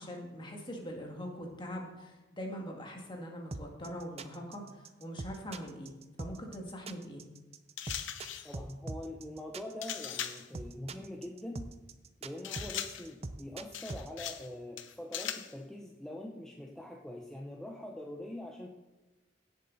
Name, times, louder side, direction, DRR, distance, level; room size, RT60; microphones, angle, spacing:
voice 1, 0.0-7.2, equal, 25° left, 1 dB, 2.1 m, -42 dB
sound 1, 3.5-14.1, right 2 dB, 35° right, 0.6 m, -42 dB
sound 2, 7.8-8.5 9.8-10.5 12.4-13.1 13.7-14.5 14.8-15.5, left 10 dB, 85° left, 0.8 m, -39 dB
voice 2, 8.4-11.7 12.2-18.7, left 1 dB, 5° left, 0 dB, 0.8 m, -44 dB
17.0 x 7.7 x 4.1 m, 1.1 s
head